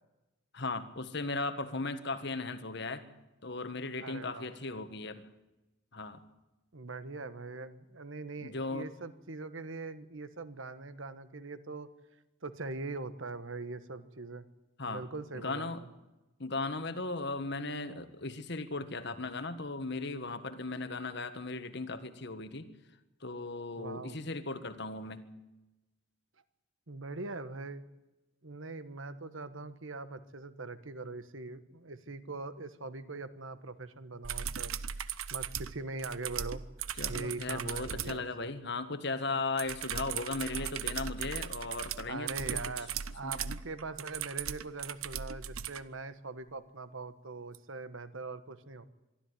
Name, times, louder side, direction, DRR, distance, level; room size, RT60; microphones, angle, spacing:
voice 1, 0.5-3.0 3.4-5.2 5.9-6.2 8.4-8.9 14.8-15.0 15.3-15.8 16.4-22.7 23.2-25.3 37.0-42.6 43.2-43.6, left 3 dB, 55° left, 10 dB, 1.6 m, -37 dB
voice 2, 4.0-4.5 6.7-11.9 12.4-14.5 14.9-15.9 23.8-24.2 26.9-27.8 28.4-34.7 35.3-36.6 37.1-38.5 40.5-40.7 42.1-48.9, right 3 dB, 70° right, 12 dB, 1.3 m, -42 dB
Keyboard Typing, 34.2-38.2 39.6-45.8 47.5-47.6, right 8 dB, 85° right, 0.9 m, -38 dB
23.5 x 13.5 x 9.6 m, 1.0 s
head